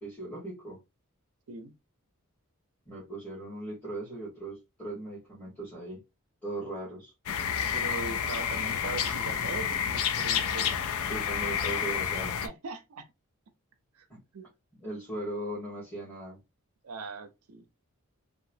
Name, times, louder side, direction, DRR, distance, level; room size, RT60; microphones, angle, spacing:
voice 1, 0.0-0.8 2.9-6.0 6.4-7.1 11.1-12.4 14.1-14.2 14.8-16.4, right 1 dB, 5° left, 1.2 m, -38 dB
sound 1, 7.3-12.5, left 8 dB, 70° left, 0.4 m, -30 dB
voice 2, 7.7-10.7 12.4-13.0 13.9-14.1 14.3-14.5 16.8-17.6, right 4 dB, 80° right, 0.5 m, -40 dB
2.9 x 2.2 x 2.6 m
head